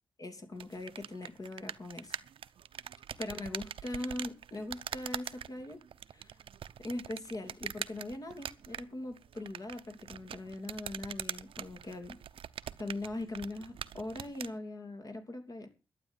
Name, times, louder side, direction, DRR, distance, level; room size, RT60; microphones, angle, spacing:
voice 1, 0.2-2.2 3.2-5.8 6.1-6.3 6.8-12.2 12.8-15.7, left 2 dB, 40° left, 6 dB, 3.0 m, -41 dB
sound 1, 0.5-14.6, right 9 dB, 85° right, 0.7 m, -44 dB
12.0 x 9.1 x 7.4 m, 0.32 s
wide cardioid pair, 110°, 9 cm